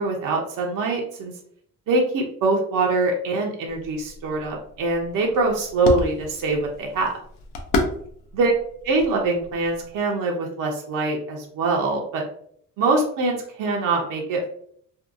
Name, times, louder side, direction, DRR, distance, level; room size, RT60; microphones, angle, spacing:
voice 1, 0.0-1.3 1.9-7.1 8.3-8.5 8.8-12.2 12.8-14.5, right 3 dB, 80° right, 0 dB, 0.6 m, -23 dB
sound 1, 3.7-10.0, left 2 dB, 90° left, 0.6 m, -32 dB
2.7 x 2.2 x 2.5 m, 0.64 s
cardioid pair, 100°, 32 cm